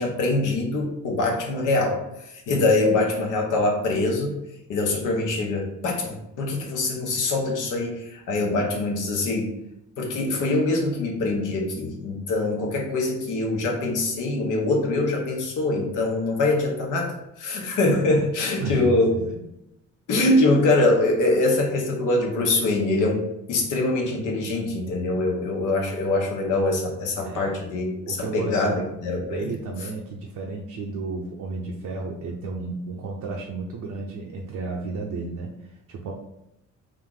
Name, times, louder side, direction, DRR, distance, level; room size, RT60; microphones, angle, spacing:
voice 1, 0.0-4.3 4.7-9.5 10.0-19.2 20.1-29.5, left 2 dB, 85° left, 0 dB, 1.0 m, -24 dB
voice 2, 18.6-19.4 24.5-24.6 25.1-25.4 27.2-27.5 28.1-28.8 29.3-36.1, right 3 dB, 75° right, -1 dB, 0.7 m, -33 dB
3.7 x 2.4 x 3.7 m, 0.86 s
cardioid pair, 90°, 30 cm